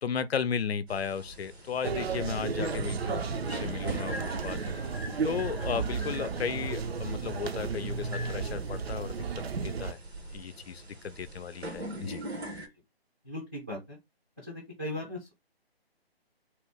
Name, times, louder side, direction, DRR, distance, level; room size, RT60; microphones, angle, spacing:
voice 1, 0.0-4.6 5.2-9.1 9.6-10.0 10.3-12.2, left 7 dB, 75° left, 0.5 m, -35 dB
sound 1, 0.9-12.7, equal, 85° right, 1.1 m, -44 dB
sound 2, 1.8-9.9, right 5 dB, 70° right, 0.6 m, -33 dB
voice 2, 13.2-14.0 14.4-15.3, left 1 dB, 10° right, 0.4 m, -38 dB
2.9 x 2.2 x 3.2 m
figure-of-eight pair, 145°, 31 cm